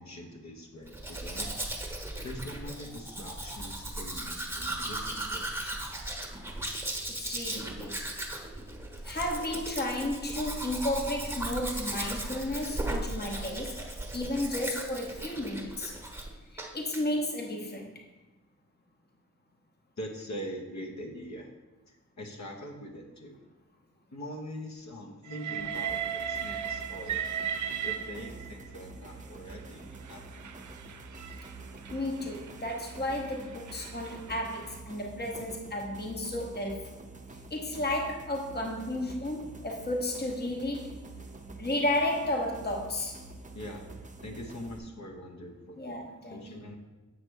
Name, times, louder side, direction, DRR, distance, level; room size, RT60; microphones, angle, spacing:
voice 1, 0.0-1.6 2.2-6.1 20.0-21.5 21.9-23.4 24.1-27.4 27.8-30.5 43.5-43.8 44.2-46.8, equal, 60° left, 1 dB, 1.1 m, -43 dB
Domestic sounds home sounds, 0.9-16.3 16.6-17.0, right 1 dB, 10° right, 1.1 m, -37 dB
voice 2, 7.1-8.0 9.0-13.8 14.1-16.0 16.5-17.9 31.9-37.0 37.5-41.0 41.6-43.2 45.8-46.6, left 1 dB, 30° left, 1 dB, 1.0 m, -33 dB
Train, 25.3-28.7 29.5-34.8, right 9 dB, 70° right, 0.5 m, -37 dB
sound 1, 25.6-44.8, right 2 dB, 25° right, 0.7 m, -47 dB
7.8 x 3.3 x 6.2 m, 1.1 s
wide cardioid pair, 70°, 31 cm